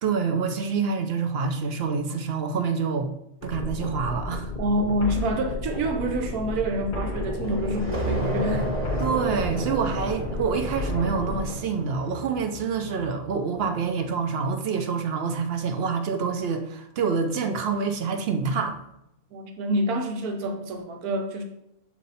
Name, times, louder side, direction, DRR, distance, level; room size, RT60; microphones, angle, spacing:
voice 1, 0.0-3.1 3.4-4.5 9.0-18.8, right 5 dB, 60° right, 7 dB, 0.6 m, -27 dB
sound 1, 3.4-11.5, left 3 dB, 45° left, 0.7 m, -32 dB
voice 2, 4.6-8.7 19.3-21.4, right 1 dB, 85° right, 5 dB, 1.3 m, -27 dB
sound 2, 7.4-13.8, right 2 dB, 30° right, 1.1 m, -33 dB
7.2 x 4.3 x 4.1 m, 0.83 s
omnidirectional pair, 1.5 m